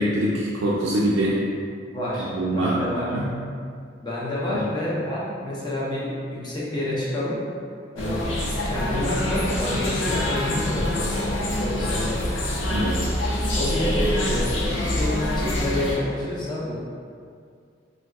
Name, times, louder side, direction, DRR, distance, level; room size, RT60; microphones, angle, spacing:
voice 1, 0.0-1.5 2.3-3.3 4.5-4.6 12.7-13.0, right 1 dB, 90° right, -6 dB, 0.4 m, -24 dB
voice 2, 1.9-3.1 4.0-7.4 7.9-8.2 8.6-12.3 12.6-12.9 13.6-16.7, left 1 dB, 25° left, -7 dB, 0.6 m, -29 dB
sound 1, 8.0-16.0, left 1 dB, 90° left, 0.5 m, -25 dB
3.2 x 2.6 x 2.3 m, 2.2 s
head